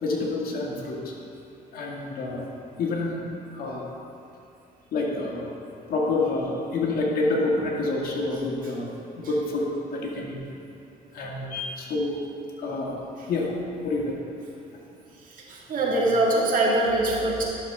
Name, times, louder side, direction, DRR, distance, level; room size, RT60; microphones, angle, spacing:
voice 1, 0.0-1.1 1.7-2.4 2.8-3.2 3.5-3.9 4.9-5.5 5.9-8.9 9.2-10.4 11.1-12.2 12.6-13.0 13.3-14.4, left 2 dB, 60° left, -2 dB, 1.7 m, -28 dB
voice 2, 15.5-17.4, right 2 dB, 55° right, -3 dB, 1.9 m, -23 dB
12.0 x 6.6 x 3.5 m, 2.6 s
cardioid pair, 110°, 17 cm